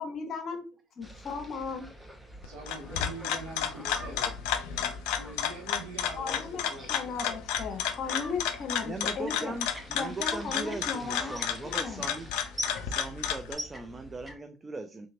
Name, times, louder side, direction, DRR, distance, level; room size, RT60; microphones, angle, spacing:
voice 1, 0.0-0.6 1.0-1.9 6.0-9.5 9.9-11.3 11.6-12.0, left 5 dB, 50° left, 0.8 m, -36 dB
sound 1, 1.0-14.3, equal, 5° right, 0.9 m, -45 dB
sound 2, 2.4-13.5, left 8 dB, 70° left, 0.4 m, -32 dB
voice 2, 2.4-4.3 5.1-7.0, right 2 dB, 70° right, 1.2 m, -43 dB
sound 3, 7.7-10.5 11.3-11.5 12.1-12.8, right 4 dB, 45° right, 0.9 m, -55 dB
voice 3, 8.8-12.3 12.8-15.1, right 3 dB, 25° right, 0.4 m, -39 dB
3.7 x 2.8 x 2.5 m
figure-of-eight pair, 55°, 0 cm